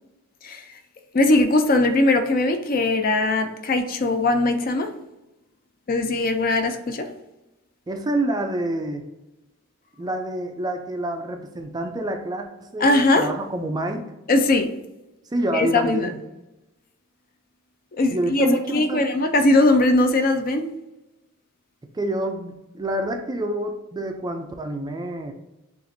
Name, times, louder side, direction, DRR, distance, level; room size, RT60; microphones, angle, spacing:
voice 1, 1.1-4.9 5.9-7.0 12.8-13.3 14.3-14.7 15.5-16.1 18.0-20.7, left 2 dB, 40° left, 7 dB, 0.5 m, -20 dB
voice 2, 7.9-9.0 10.0-14.0 15.3-16.2 18.1-19.1 21.9-25.3, right 1 dB, 20° right, 5 dB, 0.4 m, -27 dB
6.9 x 2.5 x 2.6 m, 0.98 s
head